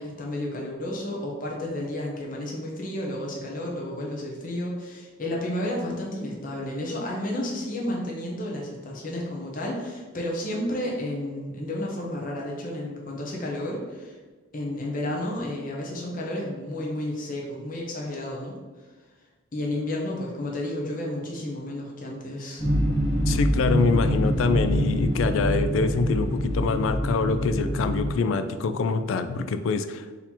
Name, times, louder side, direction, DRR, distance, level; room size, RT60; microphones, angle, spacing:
voice 1, 0.0-14.1 14.5-18.6 19.5-22.6, left 1 dB, 40° left, -2 dB, 0.8 m, -31 dB
sound 1, 22.6-28.1, equal, 20° left, 1.3 m, -25 dB
voice 2, 23.3-30.0, left 4 dB, 75° left, 10 dB, 0.3 m, -25 dB
4.2 x 2.8 x 4.3 m, 1.3 s
head